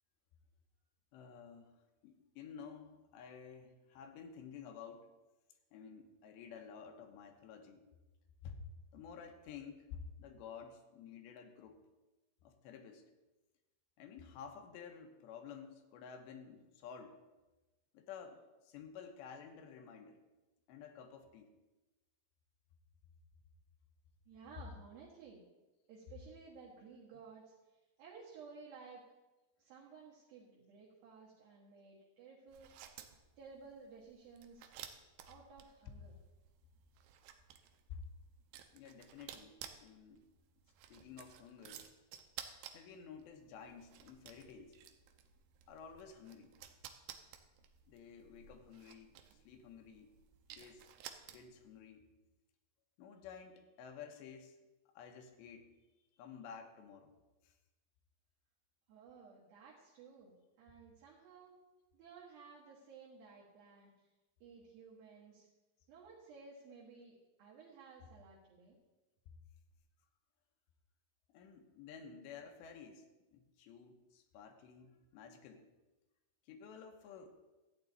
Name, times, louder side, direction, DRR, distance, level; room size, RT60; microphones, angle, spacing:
voice 1, 1.1-5.1 5.7-7.9 8.4-8.6 8.9-11.8 12.4-13.0 14.0-17.2 17.9-20.2 20.7-21.5 37.9-38.0 38.7-40.3 40.9-41.8 42.7-44.8 45.7-46.5 47.9-50.1 50.5-50.9 51.3-52.1 53.0-54.6 54.9-55.7 56.2-57.1 57.4-57.5 71.3-75.7 76.5-77.4, left 7 dB, 80° left, 5 dB, 3.1 m, -52 dB
voice 2, 24.3-25.4 25.9-29.0 29.6-32.7 33.4-34.7 35.3-36.2 58.9-61.6 61.9-64.1 64.4-65.5 65.9-68.8, right 5 dB, 65° right, -5 dB, 3.0 m, -56 dB
sound 1, 32.5-51.7, right 9 dB, 85° right, 2.2 m, -55 dB
13.5 x 9.0 x 4.0 m, 1.1 s
omnidirectional pair, 5.0 m